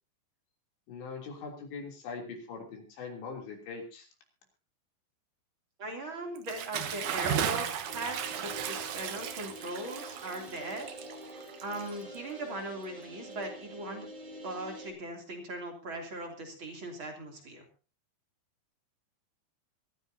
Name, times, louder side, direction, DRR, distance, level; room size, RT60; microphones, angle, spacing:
voice 1, 0.9-4.1, left 4 dB, 75° left, 1 dB, 5.5 m, -42 dB
voice 2, 5.8-10.9 11.6-14.1 14.4-17.6, right 1 dB, 30° right, 2 dB, 3.1 m, -39 dB
Bathtub (filling or washing) / Splash splatter, 6.4-12.3, right 9 dB, 75° right, 1.8 m, -36 dB
sound 1, 7.8-14.9, equal, 55° right, 6.4 m, -47 dB
24.0 x 15.0 x 2.8 m, 0.35 s
omnidirectional pair, 5.2 m